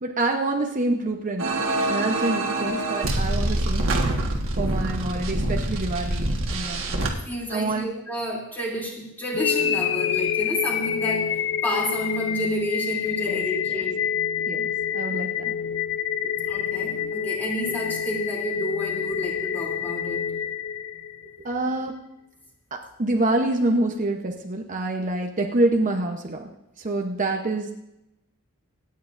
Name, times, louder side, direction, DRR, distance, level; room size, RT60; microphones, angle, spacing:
voice 1, 0.0-1.5 1.9-4.1 4.6-7.0 7.5-7.9 13.3-13.8 14.5-15.5 16.2-16.3 16.7-16.9 17.7-17.8 21.4-22.0 22.7-26.5 26.8-27.7, right 2 dB, 35° right, 2 dB, 0.9 m, -27 dB
sound 1, 1.4-7.1, right 1 dB, 65° right, 1.6 m, -25 dB
voice 2, 7.3-14.0 16.5-20.2, equal, 10° left, -3 dB, 3.0 m, -31 dB
sound 2, 9.3-21.4, left 8 dB, 60° left, 0.5 m, -27 dB
26.0 x 9.4 x 2.6 m, 0.87 s
head